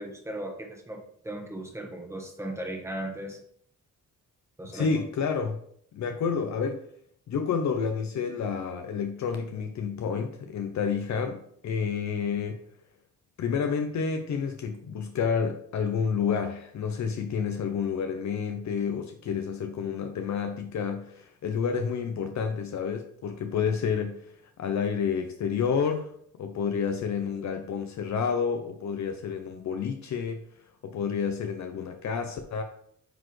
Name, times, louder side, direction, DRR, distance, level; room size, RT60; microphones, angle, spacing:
voice 1, 0.0-3.4 4.6-5.0, right 1 dB, 10° right, 2 dB, 1.3 m, -37 dB
voice 2, 4.7-5.6 5.9-6.9 7.3-12.6 13.4-26.1 26.4-30.4 30.8-32.6, left 6 dB, 65° left, 6 dB, 0.7 m, -29 dB
9.2 x 4.1 x 3.2 m, 0.65 s
cardioid pair, 115°, 30 cm